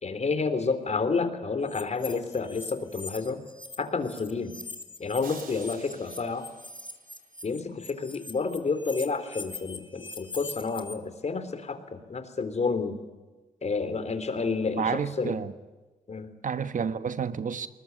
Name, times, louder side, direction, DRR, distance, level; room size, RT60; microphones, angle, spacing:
voice 1, 0.0-3.4 3.8-4.5 5.0-6.5 7.4-13.0 13.6-15.3 16.1-16.3, left 4 dB, 50° left, 3.4 m, -30 dB
sound 1, 1.7-3.8 4.0-10.9, left 3 dB, 35° left, 3.0 m, -42 dB
sound 2, 5.2-7.5, right 6 dB, 85° right, 3.4 m, -49 dB
voice 2, 14.8-15.5 16.4-17.7, right 6 dB, 65° right, 1.4 m, -30 dB
21.5 x 19.5 x 9.3 m
cardioid pair, 65°, 14 cm